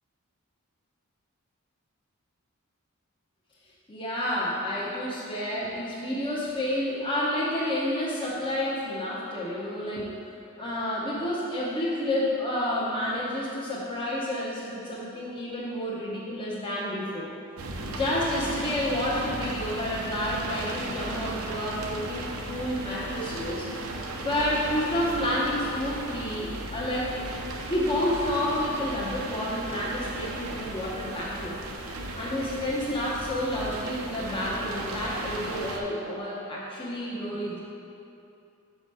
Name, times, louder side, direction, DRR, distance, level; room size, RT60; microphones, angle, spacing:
voice 1, 3.9-10.1 10.6-17.3 17.9-23.9 24.2-27.1 27.7-31.6 32.1-37.6, left 1 dB, 25° left, -7 dB, 0.9 m, -30 dB
sound 1, 17.6-35.8, right 2 dB, 70° right, 0.7 m, -36 dB
6.3 x 5.0 x 5.4 m, 2.7 s
head